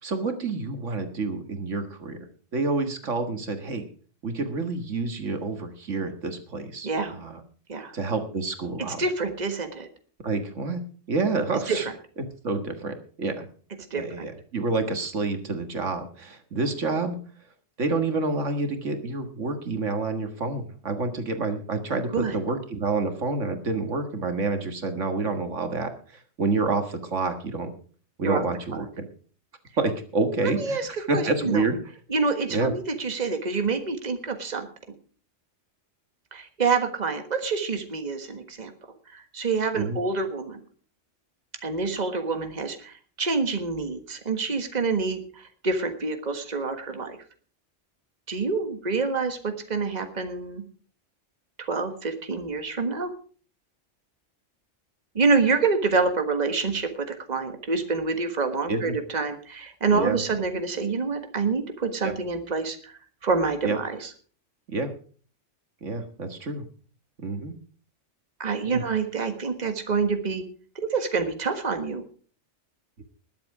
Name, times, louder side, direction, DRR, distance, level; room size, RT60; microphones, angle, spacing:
voice 1, 0.0-2.2 2.5-3.8 4.2-7.4 7.9-9.0 10.2-10.8 11.1-11.9 12.4-13.5 13.9-17.2 17.8-27.7 28.2-29.1 29.8-30.8 31.1-31.8 32.5-32.7 39.7-40.0 58.7-59.0 59.9-60.2 62.0-62.1 63.6-63.8 64.7-64.9 65.8-66.6 67.2-67.5 68.6-68.8, right 3 dB, 85° right, 7 dB, 2.0 m, -28 dB
voice 2, 6.8-7.2 7.7-7.9 9.0-9.9 11.7-11.9 13.9-14.3 22.1-22.4 28.2-28.4 30.4-30.9 31.1-31.6 32.1-34.7 36.3-38.7 39.1-40.6 41.6-47.2 48.3-50.6 51.6-53.1 55.1-62.9 63.2-64.1 68.4-70.4 70.7-72.0, right 4 dB, 35° right, 6 dB, 1.6 m, -27 dB
20.5 x 7.8 x 4.9 m, 0.42 s
omnidirectional pair, 1.2 m